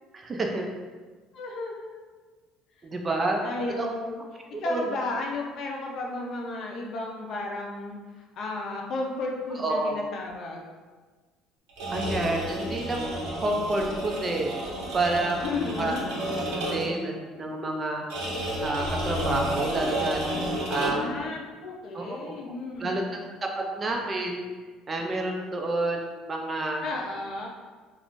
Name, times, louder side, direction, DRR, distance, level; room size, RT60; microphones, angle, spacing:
voice 1, 0.1-0.7 2.8-3.4 3.8-3.9 4.5-5.0 9.6-10.0 11.9-14.5 14.9-15.4 15.8-15.9 16.6-18.0 18.6-20.2 20.7-21.2 21.9-22.3 22.8-23.0 23.6-24.5 24.9-26.0 26.3-26.8, right 2 dB, 25° right, 1 dB, 0.3 m, -29 dB
voice 2, 1.3-2.0 3.4-4.2 4.5-10.7 15.4-16.1 20.8-23.3 26.8-27.5, left 2 dB, 50° left, 0 dB, 0.5 m, -33 dB
sound 1, 11.7-17.1 18.1-21.2, equal, 80° right, 0.8 m, -31 dB
2.4 x 2.4 x 3.6 m, 1.4 s
cardioid pair, 150°, 0 cm